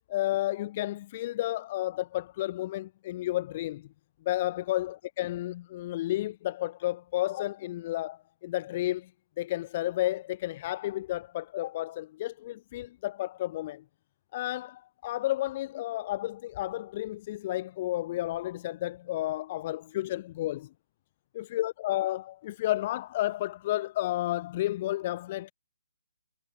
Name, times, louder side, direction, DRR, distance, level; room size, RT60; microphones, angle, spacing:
voice 1, 0.1-3.9 4.2-9.1 9.4-13.8 14.3-20.7 21.3-25.5, left 15 dB, 30° left, 3.3 m, -32 dB
figure-of-eight pair, 140°, 0 cm